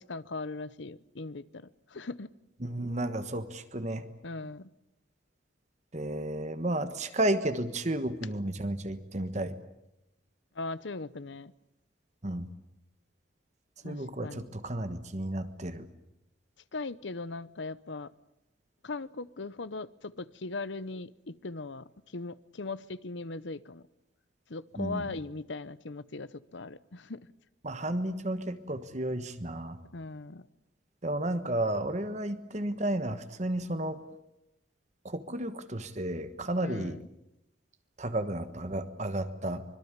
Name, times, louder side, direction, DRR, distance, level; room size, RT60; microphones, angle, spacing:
voice 1, 0.0-2.3 4.2-4.7 10.5-11.5 13.8-14.5 16.7-18.1 18.8-23.9 24.5-27.3 29.9-30.5 36.6-37.0, left 3 dB, 70° left, 17 dB, 0.8 m, -39 dB
voice 2, 2.6-4.1 5.9-9.6 12.2-12.5 13.8-15.9 24.8-25.0 27.6-29.8 31.0-34.0 35.0-37.0 38.0-39.6, right 1 dB, 35° right, 10 dB, 1.3 m, -32 dB
25.0 x 22.0 x 8.9 m, 0.89 s
head